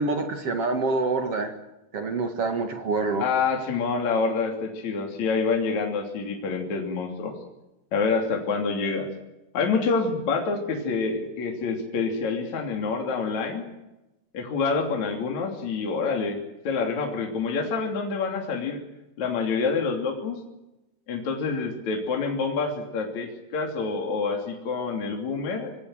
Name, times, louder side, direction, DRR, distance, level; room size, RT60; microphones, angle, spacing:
voice 1, 0.0-1.5 1.9-3.2, right 3 dB, 45° right, 6 dB, 2.1 m, -26 dB
voice 2, 3.2-7.3 7.9-9.1 9.5-13.7 14.3-16.4 16.6-18.8 19.2-20.4 21.1-25.8, left 4 dB, 45° left, 1 dB, 4.0 m, -27 dB
25.5 x 19.5 x 7.8 m, 0.96 s
omnidirectional pair, 4.9 m